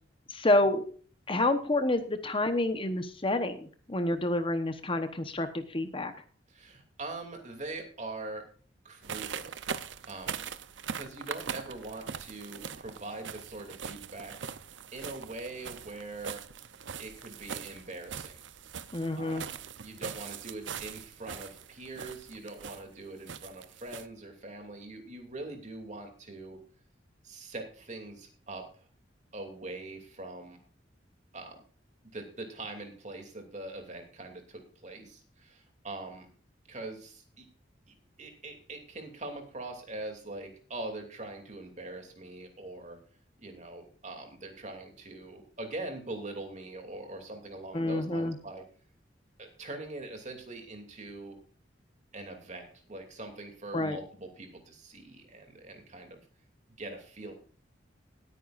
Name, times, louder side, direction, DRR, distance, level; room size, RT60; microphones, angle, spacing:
voice 1, 0.3-0.9 1.3-6.1 18.9-19.4 47.7-48.4 53.7-54.0, left 2 dB, 30° left, 9 dB, 1.0 m, -28 dB
voice 2, 6.5-8.4 8.8-10.4 10.9-14.3 14.9-16.4 17.0-18.4 19.2-26.6 27.2-28.9 29.3-30.6 31.3-31.6 32.1-36.3 36.7-37.4 37.9-43.0 43.4-48.6 49.4-51.4 52.1-56.2 56.8-57.3, right 2 dB, 40° right, 4 dB, 2.8 m, -43 dB
sound 1, 9.0-24.0, right 7 dB, 80° right, 0.7 m, -41 dB
20.0 x 9.2 x 2.5 m, 0.41 s
head